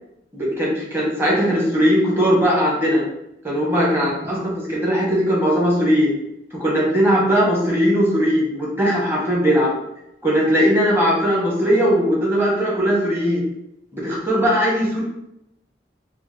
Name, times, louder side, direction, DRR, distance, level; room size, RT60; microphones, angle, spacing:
voice 1, 0.3-3.0 3.4-6.1 6.5-9.7 10.2-13.4 13.9-15.0, equal, 15° right, -4 dB, 0.9 m, -19 dB
4.3 x 2.0 x 3.1 m, 0.83 s
head